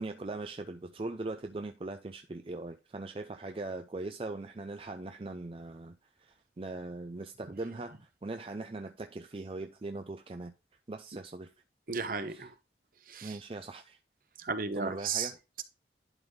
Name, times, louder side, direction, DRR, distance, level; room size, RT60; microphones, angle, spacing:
voice 1, 0.0-10.5 10.9-11.5 12.3-12.5 13.2-14.0 14.7-15.4, right 2 dB, 30° right, 0.4 m, -40 dB
voice 2, 11.9-12.5 13.1-13.4 14.4-15.3, right 5 dB, 50° right, 0.9 m, -34 dB
11.0 x 4.1 x 3.6 m
head